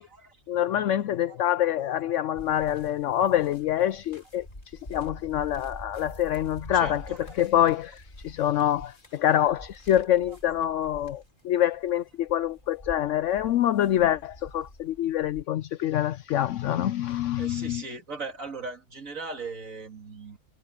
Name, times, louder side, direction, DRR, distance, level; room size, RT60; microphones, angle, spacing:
voice 1, 0.5-4.5 4.9-7.0 7.4-17.8, left 11 dB, 70° left, 0.9 m, -26 dB
sound 1, 2.4-15.4, left 1 dB, 40° left, 4.3 m, -46 dB
voice 2, 6.7-7.2 17.4-20.4, right 4 dB, 80° right, 2.8 m, -38 dB
omnidirectional pair, 1.4 m